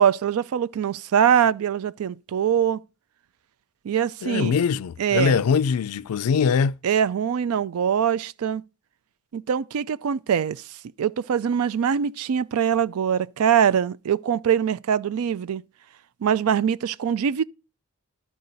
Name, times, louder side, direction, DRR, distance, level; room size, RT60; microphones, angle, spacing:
voice 1, 0.0-2.8 3.8-4.6 5.0-5.4 6.8-8.6 9.3-10.6 11.0-15.6 16.2-17.4, right 8 dB, 80° right, 0.4 m, -23 dB
voice 2, 4.2-6.8, left 6 dB, 85° left, 0.4 m, -22 dB
12.5 x 4.8 x 3.9 m
head